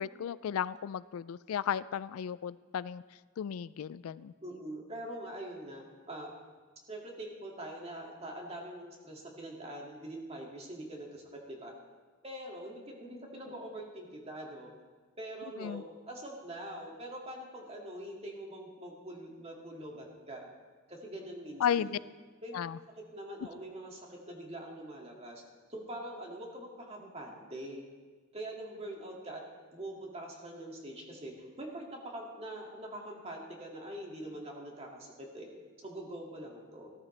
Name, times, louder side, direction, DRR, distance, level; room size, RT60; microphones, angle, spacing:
voice 1, 0.0-3.0 3.4-4.3 15.6-15.8 21.6-22.0 22.5-22.8, left 8 dB, 90° left, 18 dB, 0.3 m, -34 dB
voice 2, 4.4-6.3 6.9-11.7 12.2-14.7 15.2-20.5 20.9-21.9 22.4-22.6 23.1-25.4 25.7-27.8 28.3-29.4 29.7-35.5 35.8-36.9, right 1 dB, 30° right, -1 dB, 2.2 m, -44 dB
16.0 x 13.5 x 3.3 m, 1.4 s
head